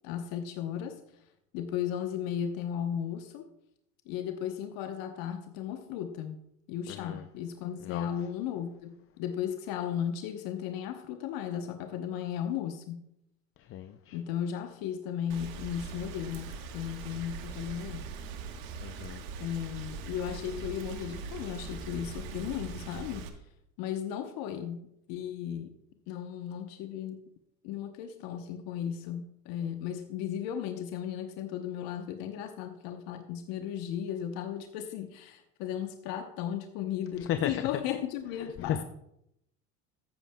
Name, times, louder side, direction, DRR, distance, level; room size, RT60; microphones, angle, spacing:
voice 1, 0.0-1.0 1.5-3.5 4.1-13.1 14.1-18.1 19.4-23.3 23.8-25.8 26.1-27.2 27.6-38.8, left 9 dB, 60° left, 0.9 m, -35 dB
voice 2, 6.9-7.2 7.8-8.1 13.7-14.2 18.8-19.2 37.3-37.5 38.6-38.8, left 10 dB, 35° left, 0.5 m, -34 dB
Rain, 15.3-23.3, right 5 dB, 65° right, 1.3 m, -41 dB
13.5 x 8.8 x 2.2 m
hypercardioid pair, 85°, 39 cm